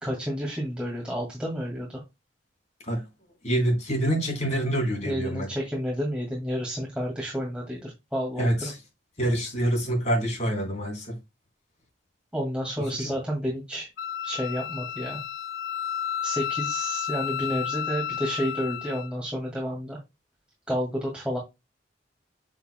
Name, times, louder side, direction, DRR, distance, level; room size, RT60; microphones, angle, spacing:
voice 1, 0.0-2.0 5.1-8.7 12.3-13.9 14.2-15.2 16.2-20.0 20.7-21.4, equal, 5° right, 2.0 m, -30 dB
voice 2, 3.4-5.5 8.4-8.7 9.2-11.1, right 1 dB, 40° left, 3.4 m, -26 dB
Wind instrument woodwind instrument, 14.0-19.1, left 9 dB, 90° left, 0.6 m, -32 dB
7.1 x 6.7 x 2.2 m
head